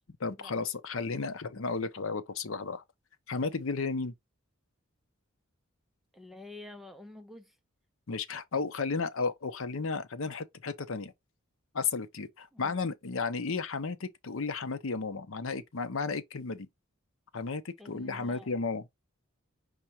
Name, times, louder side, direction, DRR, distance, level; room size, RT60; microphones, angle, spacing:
voice 1, 0.2-2.8 3.3-4.1 8.1-11.1 11.7-16.7 17.3-18.9, left 4 dB, 70° left, 0.7 m, -33 dB
voice 2, 6.1-7.6 12.5-12.7 17.8-18.5, left 2 dB, ahead, 0.6 m, -48 dB
5.1 x 3.3 x 2.9 m
head